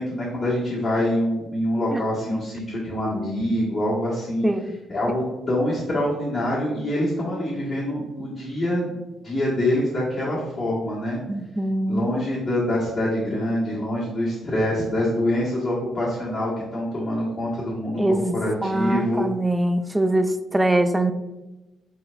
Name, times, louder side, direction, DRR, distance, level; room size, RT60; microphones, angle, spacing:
voice 1, 0.0-4.4 4.9-5.2 5.5-8.9 9.2-11.2 11.9-18.0 18.3-19.3, left 1 dB, 40° left, 1.4 m, -25 dB
voice 2, 4.4-4.8 11.3-12.1 18.0-18.3 18.6-21.1, right 1 dB, 10° right, 0.3 m, -23 dB
4.5 x 3.8 x 2.5 m
cardioid pair, 90°, 0 cm